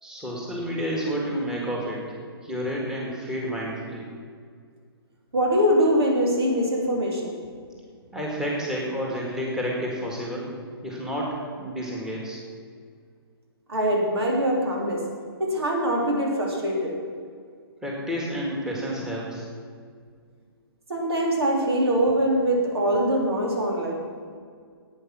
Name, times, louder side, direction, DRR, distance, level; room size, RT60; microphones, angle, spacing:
voice 1, 0.0-2.0 2.4-4.0 8.1-10.5 10.8-12.4 17.8-19.5, equal, 5° right, -3 dB, 1.9 m, -30 dB
voice 2, 5.3-7.4 13.7-15.0 15.4-17.0 20.9-24.0, equal, 80° right, -1 dB, 3.5 m, -23 dB
11.0 x 9.0 x 6.1 m, 2.1 s
hypercardioid pair, 150°, 13 cm